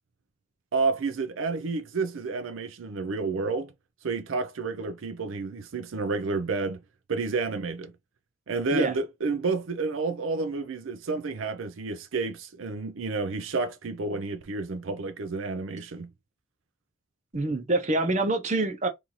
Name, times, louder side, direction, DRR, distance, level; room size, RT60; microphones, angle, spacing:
voice 1, 0.7-3.7 4.0-6.8 7.1-7.9 8.5-16.1, right 4 dB, 80° right, 0.5 m, -30 dB
voice 2, 17.3-18.9, right 2 dB, 35° right, 0.7 m, -25 dB
3.1 x 2.6 x 3.9 m
head